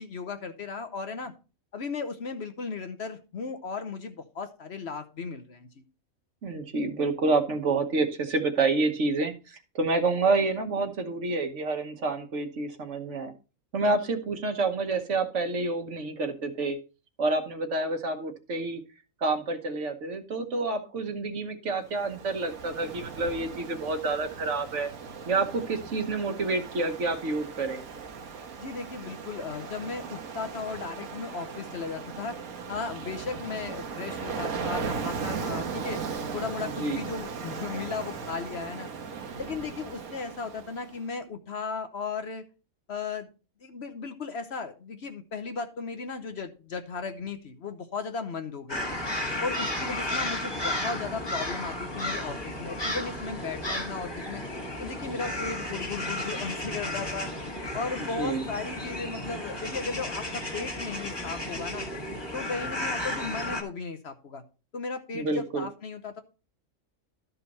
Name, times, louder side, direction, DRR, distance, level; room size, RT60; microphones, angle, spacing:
voice 1, 0.0-1.3 1.7-5.8 28.6-32.4 32.7-36.0 36.3-38.9 39.4-42.5 42.9-43.3 43.6-49.0 49.4-54.4 54.8-57.3 57.7-61.9 62.3-64.4 64.7-66.2, left 4 dB, 55° left, 8 dB, 1.1 m, -36 dB
voice 2, 6.4-13.3 13.7-16.8 17.2-18.8 19.2-24.9 25.3-27.8 36.6-37.0 58.0-58.4 65.1-65.7, right 3 dB, 60° right, 7 dB, 1.4 m, -28 dB
Ocean, 21.8-41.0, right 5 dB, 90° right, 1.5 m, -37 dB
sound 1, 48.7-63.6, left 1 dB, 20° left, 1.7 m, -33 dB
12.5 x 5.4 x 4.2 m, 0.32 s
omnidirectional pair, 1.5 m